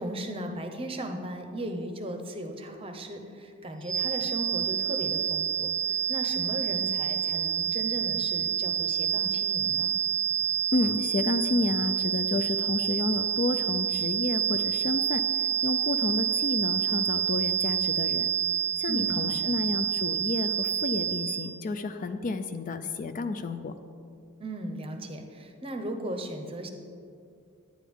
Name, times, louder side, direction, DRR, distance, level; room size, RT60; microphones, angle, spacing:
voice 1, 0.0-9.9 18.9-19.5 24.4-26.7, right 1 dB, 25° right, 5 dB, 0.7 m, -36 dB
sound 1, 3.8-21.6, right 8 dB, 55° left, 1.3 m, -28 dB
voice 2, 10.7-15.2 15.6-18.3 18.8-23.7, left 3 dB, 35° left, 9 dB, 0.3 m, -30 dB
10.0 x 10.0 x 3.6 m, 2.4 s
head